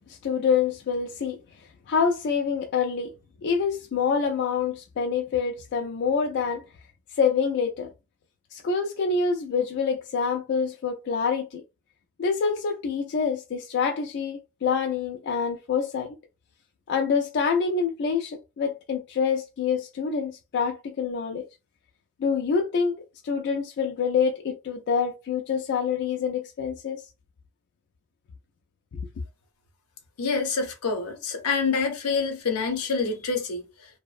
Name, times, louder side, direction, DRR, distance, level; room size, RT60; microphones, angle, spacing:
voice 1, 0.1-1.4 1.9-3.1 3.4-6.6 7.1-7.9 8.5-11.6 12.2-16.2 16.9-21.5 22.2-23.0 23.2-27.0, left 5 dB, 50° left, 0.3 m, -26 dB
voice 2, 30.2-33.6, left 4 dB, 80° left, 0.7 m, -26 dB
2.6 x 2.0 x 2.4 m
head